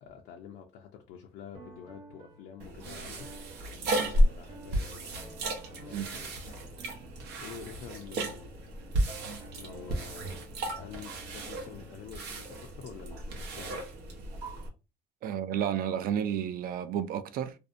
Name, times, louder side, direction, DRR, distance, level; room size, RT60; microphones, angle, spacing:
voice 1, 0.0-3.3 4.0-5.1 5.7-6.3 7.4-8.5 9.6-10.4 10.8-13.8, left 7 dB, 75° left, 0.5 m, -47 dB
sound 1, 1.5-12.0, right 2 dB, 25° right, 0.7 m, -52 dB
sound 2, 2.6-14.7, equal, 85° right, 0.7 m, -33 dB
voice 2, 15.2-17.6, right 9 dB, 60° right, 0.4 m, -31 dB
2.6 x 2.1 x 2.5 m
cardioid pair, 110°, 17 cm